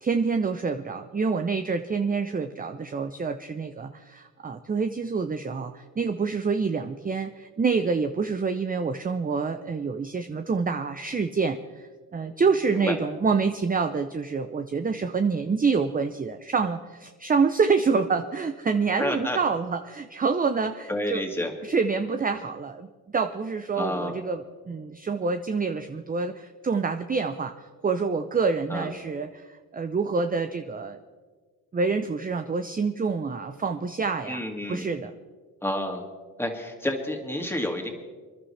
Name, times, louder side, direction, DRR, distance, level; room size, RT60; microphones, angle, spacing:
voice 1, 0.0-11.9 12.1-21.2 21.6-22.9 23.1-31.0 31.7-34.4 34.7-35.1, right 5 dB, 20° right, 8 dB, 0.6 m, -27 dB
voice 2, 19.0-19.4 20.9-21.5 23.8-24.1 28.7-28.9 34.3-34.9 35.6-36.0 36.4-37.9, left 1 dB, 5° left, 2 dB, 2.3 m, -29 dB
26.5 x 11.0 x 3.3 m, 1.4 s
cardioid pair, 70°, 38 cm